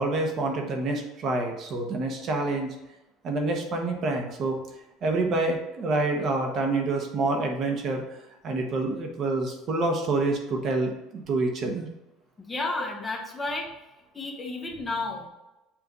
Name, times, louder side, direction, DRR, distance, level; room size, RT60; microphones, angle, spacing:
voice 1, 0.0-2.7 3.2-4.6 5.0-8.0 8.4-11.9, right 2 dB, 40° right, 3 dB, 0.9 m, -27 dB
voice 2, 12.4-13.7 14.1-15.3, left 2 dB, 15° left, 1 dB, 0.9 m, -32 dB
7.1 x 2.5 x 5.2 m, 0.97 s
cardioid pair, 145°, 0 cm